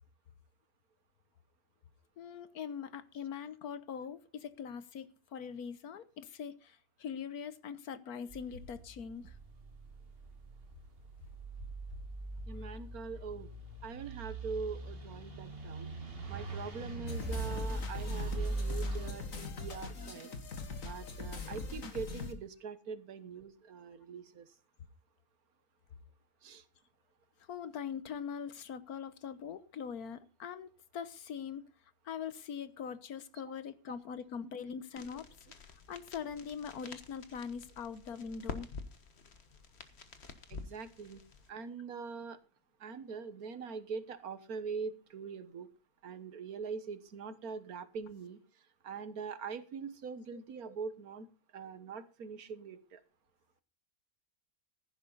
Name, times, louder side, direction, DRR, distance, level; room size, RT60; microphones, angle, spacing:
voice 1, 2.2-9.3 27.5-31.6 32.0-35.3 35.9-38.7 50.3-50.4, left 7 dB, 85° left, 14 dB, 1.5 m, -42 dB
sound 1, 8.3-19.1, right 2 dB, 40° right, 2.1 m, -41 dB
voice 2, 12.5-13.5 13.8-15.9 16.3-20.3 20.8-24.5 26.4-26.6 40.5-41.2 41.5-42.4 42.8-45.7 46.0-48.4 48.8-51.3 51.5-53.0, right 5 dB, 75° right, 13 dB, 1.6 m, -43 dB
sound 2, 17.1-22.3, left 4 dB, 60° left, 2.1 m, -42 dB
sound 3, 35.0-41.5, left 4 dB, 45° left, 1.6 m, -48 dB
15.5 x 11.0 x 4.0 m, 0.32 s
omnidirectional pair, 1.6 m